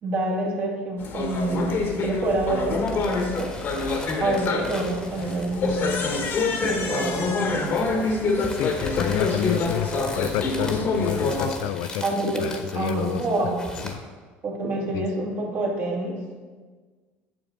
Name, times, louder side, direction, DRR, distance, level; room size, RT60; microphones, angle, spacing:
voice 1, 0.0-3.5 4.2-6.0 6.6-7.7 12.0-12.4 12.7-13.6 14.4-16.1, right 2 dB, 45° right, -2 dB, 2.1 m, -27 dB
sound 1, 1.0-11.5, left 3 dB, 45° left, 1.3 m, -26 dB
sound 2, 2.9-13.9, left 1 dB, 15° left, 1.3 m, -40 dB
voice 2, 8.5-12.0 12.4-13.5 13.8-14.0 14.9-15.1, left 11 dB, 70° left, 12 dB, 0.4 m, -29 dB
8.9 x 6.9 x 3.8 m, 1.4 s
supercardioid pair, 115°, 5 cm